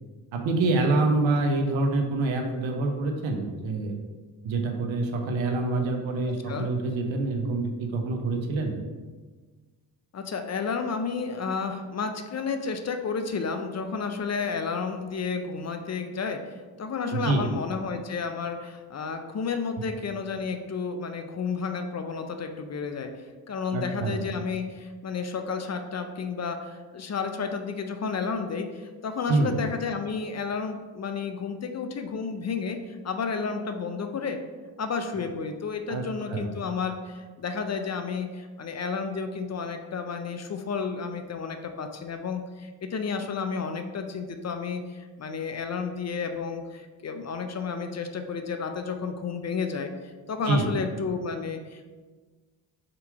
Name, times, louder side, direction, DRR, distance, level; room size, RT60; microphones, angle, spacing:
voice 1, 0.3-3.9 4.4-8.8 17.1-17.4 23.7-24.2 29.3-29.6 35.9-36.0 36.3-36.5 50.5-50.7, right 3 dB, 70° right, 3 dB, 0.8 m, -26 dB
voice 2, 10.1-34.4 34.8-51.9, left 5 dB, 35° left, 6 dB, 0.5 m, -32 dB
3.7 x 2.8 x 4.5 m, 1.4 s
hypercardioid pair, 40°, 47 cm